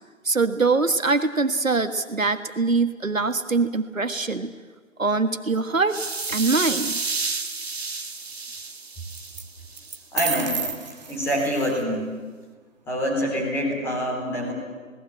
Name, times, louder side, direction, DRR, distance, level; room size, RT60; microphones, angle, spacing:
voice 1, 0.2-4.5 5.0-6.0 6.3-7.0, right 3 dB, 75° right, 10 dB, 1.6 m, -23 dB
sound 1, 5.9-10.0, right 4 dB, 50° right, 2.2 m, -31 dB
sound 2, 6.2-6.8 9.1-9.4 9.8-11.8, right 5 dB, 30° right, 1.5 m, -32 dB
voice 2, 10.1-10.6 11.1-12.1 12.9-14.5, equal, 5° left, -3 dB, 3.9 m, -25 dB
27.5 x 19.0 x 9.1 m, 1.5 s
figure-of-eight pair, 155°, 40 cm